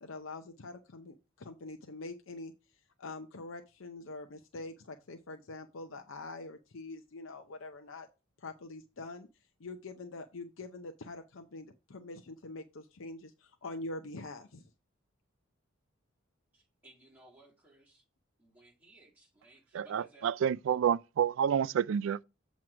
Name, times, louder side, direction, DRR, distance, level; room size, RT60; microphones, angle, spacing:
voice 1, 0.0-2.5 3.0-8.1 8.4-9.3 9.6-14.7, left 2 dB, 80° left, 0.7 m, -44 dB
voice 2, 16.5-18.0 18.4-20.3, right 1 dB, 10° right, 1.9 m, -60 dB
voice 3, 19.7-22.2, right 8 dB, 75° right, 0.3 m, -29 dB
7.6 x 3.0 x 6.0 m
head